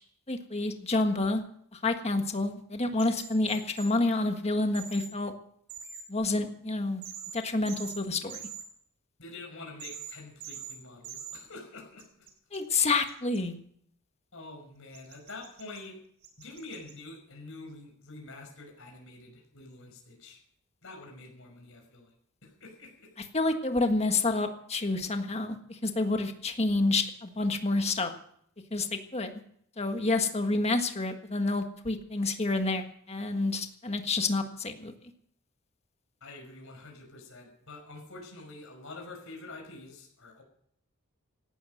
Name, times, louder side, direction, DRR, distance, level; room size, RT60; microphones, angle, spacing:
voice 1, 0.3-1.4 1.8-5.3 6.1-7.0 7.3-8.4 12.5-13.6 23.3-28.1 28.7-29.3 29.8-34.9, left 2 dB, 30° left, 6 dB, 1.6 m, -28 dB
sound 1, 3.0-3.9 4.7-5.1 5.7-6.0 7.0-7.4 7.7-8.0 8.3-8.6 9.8-10.2 10.4-10.8 11.0-11.4 12.0-13.4 14.9-15.8 16.2-16.9, right 7 dB, 50° right, 3.5 m, -43 dB
voice 2, 9.2-12.3 14.3-16.0 16.4-20.4 20.8-22.1 22.4-23.1 36.2-40.4, left 2 dB, 65° left, 1 dB, 5.7 m, -46 dB
17.0 x 12.5 x 6.5 m, 0.66 s
head